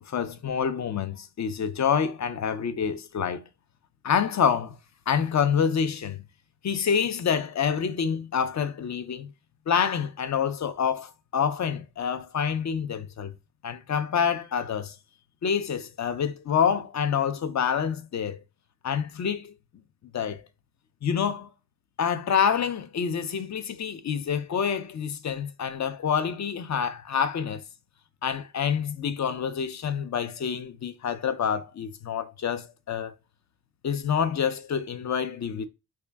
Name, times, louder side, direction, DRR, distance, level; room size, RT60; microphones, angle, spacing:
voice 1, 0.0-3.4 4.0-4.8 5.1-6.2 6.6-9.3 9.7-13.3 13.6-15.0 15.4-18.4 18.8-19.5 20.1-20.5 21.0-21.5 22.0-27.6 28.2-33.1 33.8-35.7, left 7 dB, 45° left, 0.5 m, -27 dB
3.6 x 2.3 x 3.4 m
cardioid pair, 95°, 42 cm